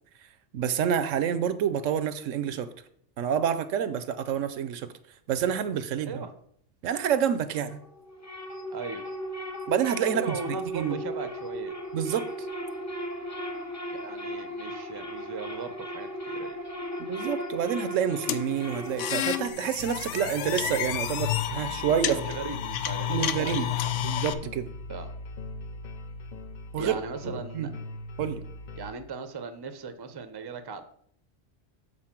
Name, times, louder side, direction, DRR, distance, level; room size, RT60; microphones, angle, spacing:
voice 1, 0.5-2.7 3.2-4.9 5.3-6.2 6.8-7.8 9.7-10.4 10.7-11.0 11.9-12.5 17.0-22.2 23.1-23.7 24.0-24.7 26.7-26.9 27.2-27.7 28.2-28.4, right 8 dB, 80° right, 13 dB, 1.0 m, -28 dB
sound 1, 7.5-19.5, equal, 15° left, 0.7 m, -36 dB
voice 2, 8.7-9.0 10.1-11.7 13.9-16.6 21.9-23.9 24.9-25.1 26.8-27.7 28.8-30.9, right 5 dB, 25° right, 8 dB, 0.5 m, -38 dB
sound 2, 18.3-24.3, left 11 dB, 75° left, 0.9 m, -30 dB
sound 3, 19.8-28.9, left 2 dB, 50° left, 0.5 m, -40 dB
7.8 x 4.1 x 5.9 m, 0.65 s
omnidirectional pair, 1.3 m